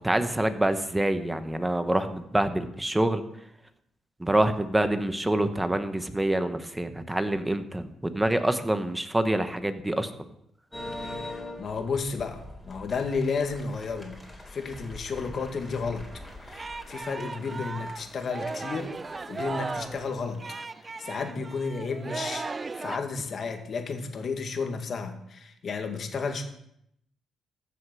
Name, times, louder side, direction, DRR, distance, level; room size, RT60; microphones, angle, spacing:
voice 1, 0.0-3.2 4.2-10.2, right 1 dB, 10° right, 10 dB, 1.2 m, -26 dB
sound 1, 10.7-20.5, left 1 dB, 10° left, 3.6 m, -44 dB
voice 2, 11.0-14.2 14.5-16.0 16.4-20.4 21.0-22.5 22.7-26.4, left 4 dB, 50° left, 5 dB, 2.0 m, -32 dB
Singing, 16.1-23.0, right 3 dB, 30° right, 0.6 m, -37 dB
15.0 x 6.5 x 6.3 m, 0.75 s
cardioid pair, 90°, 0 cm